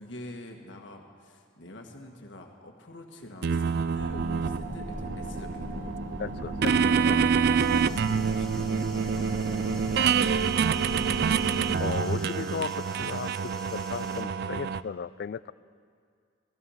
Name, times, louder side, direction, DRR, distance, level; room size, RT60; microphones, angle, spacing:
voice 1, 0.0-6.0 7.8-11.1, left 1 dB, 70° left, 3 dB, 1.6 m, -46 dB
sound 1, 3.4-14.8, right 6 dB, 55° right, 0.3 m, -27 dB
sound 2, 3.9-11.7, right 1 dB, 75° right, 5.3 m, -37 dB
voice 2, 6.2-7.3 11.8-15.5, left 6 dB, 55° left, 19 dB, 0.3 m, -36 dB
sound 3, 7.6-14.2, left 1 dB, 5° left, 1.7 m, -48 dB
16.0 x 15.5 x 5.7 m, 2.1 s
head